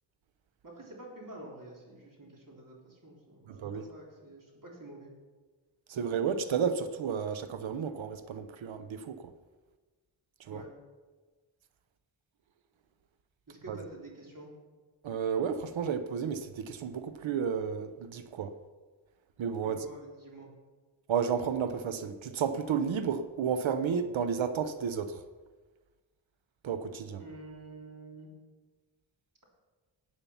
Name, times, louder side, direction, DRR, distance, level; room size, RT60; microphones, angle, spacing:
voice 1, 0.6-5.1 10.5-10.7 13.5-14.5 19.6-20.5 27.2-28.3, right 1 dB, 45° right, 3.5 m, -48 dB
voice 2, 3.5-3.9 5.9-9.3 10.5-10.6 13.7-13.8 15.0-18.6 19.4-19.8 21.1-25.2 26.6-27.2, right 7 dB, 75° right, 0.9 m, -32 dB
14.0 x 8.8 x 5.6 m
cardioid pair, 65°, 46 cm